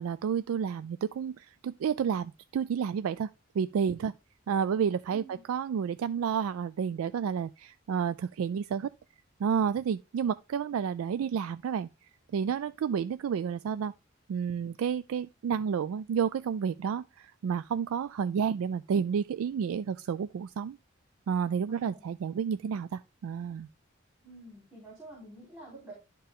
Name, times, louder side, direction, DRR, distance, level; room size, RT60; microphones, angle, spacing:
voice 1, 0.0-3.3 3.6-4.1 4.5-8.9 9.4-11.9 12.3-13.9 14.3-20.8 21.3-23.7, right 7 dB, 90° right, 0.3 m, -30 dB
voice 2, 5.1-5.4 21.7-22.0 24.2-25.9, right 2 dB, 15° right, 3.6 m, -48 dB
11.5 x 4.5 x 3.5 m
head